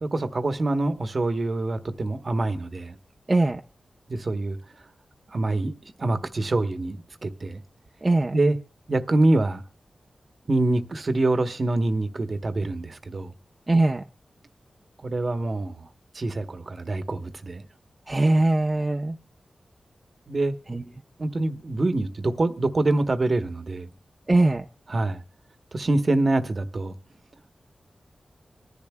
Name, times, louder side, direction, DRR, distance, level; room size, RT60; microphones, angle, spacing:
voice 1, 0.0-2.9 4.1-4.6 5.3-5.7 6.0-7.6 8.3-8.6 8.9-9.6 10.5-13.3 15.0-15.8 16.1-17.7 20.3-20.6 21.2-23.9 24.9-25.2 25.7-26.9, right 2 dB, 50° right, 1.1 m, -25 dB
voice 2, 3.3-3.6 8.0-8.3 13.7-14.0 18.1-19.2 20.7-20.8 24.3-24.6, right 2 dB, 25° right, 0.6 m, -21 dB
26.0 x 10.5 x 2.3 m
wide cardioid pair, 85°, 0 cm